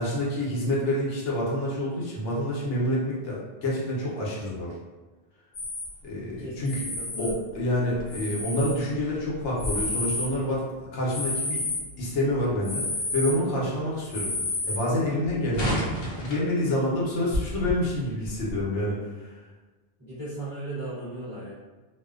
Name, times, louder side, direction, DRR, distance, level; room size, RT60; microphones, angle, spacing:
voice 1, 0.0-4.7 6.0-6.8 7.2-11.6 12.0-12.9 13.1-14.3 14.6-15.8 16.2-19.3, left 1 dB, 85° left, -5 dB, 1.0 m, -27 dB
sound 1, 5.5-5.9 6.7-7.4 8.0-8.8 9.4-10.3 11.1-11.8 12.6-13.4 14.1-14.8 15.2-16.5 17.0-17.1 17.3-17.7 18.2-18.6, left 2 dB, 65° left, 0.7 m, -30 dB
voice 2, 6.4-7.4 20.0-21.5, right 1 dB, 25° right, -12 dB, 0.7 m, -37 dB
2.5 x 2.1 x 2.3 m, 1.3 s
omnidirectional pair, 1.2 m